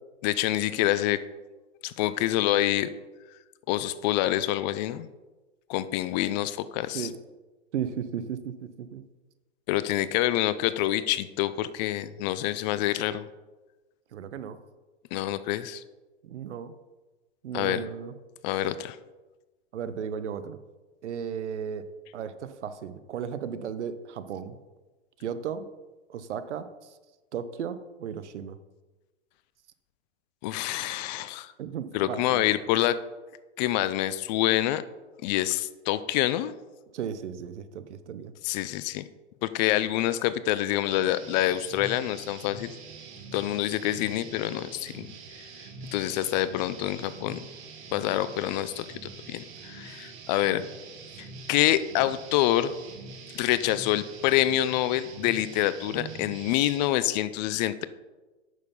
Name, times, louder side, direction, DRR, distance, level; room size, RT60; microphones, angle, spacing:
voice 1, 0.2-1.2 1.8-2.9 3.7-5.1 5.7-7.1 9.7-13.3 15.1-15.8 17.5-17.8 18.4-19.0 30.4-31.5 31.9-33.0 33.6-34.8 35.2-36.5 38.4-39.0 39.4-42.8 43.3-45.1 45.9-47.4 47.9-48.9 49.3-50.6 51.2-52.7 53.3-57.9, left 14 dB, 40° left, 14 dB, 0.6 m, -26 dB
voice 2, 7.7-9.0 14.1-14.6 16.2-16.7 17.4-18.1 19.7-20.6 21.0-21.8 22.1-24.6 25.2-25.7 26.1-26.9 27.3-28.6 31.6-32.5 36.9-38.3, right 8 dB, 75° right, 12 dB, 1.0 m, -35 dB
sound 1, 40.9-56.9, right 4 dB, 35° right, 1.8 m, -44 dB
9.2 x 6.7 x 5.4 m, 1.2 s
hypercardioid pair, 125°, 35 cm